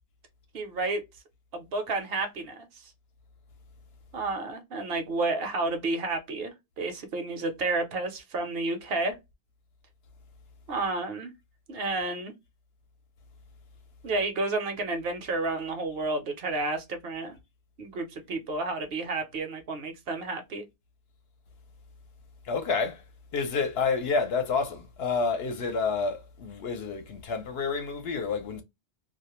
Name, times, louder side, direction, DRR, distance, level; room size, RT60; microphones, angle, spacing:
voice 1, 0.5-1.0 1.5-2.9 4.1-9.1 10.7-11.3 11.7-12.3 14.0-17.4 17.8-20.6, right 3 dB, 65° right, 0.8 m, -31 dB
voice 2, 22.4-23.0 23.3-28.6, left 4 dB, 65° left, 0.9 m, -29 dB
2.3 x 2.0 x 2.9 m
omnidirectional pair, 1.1 m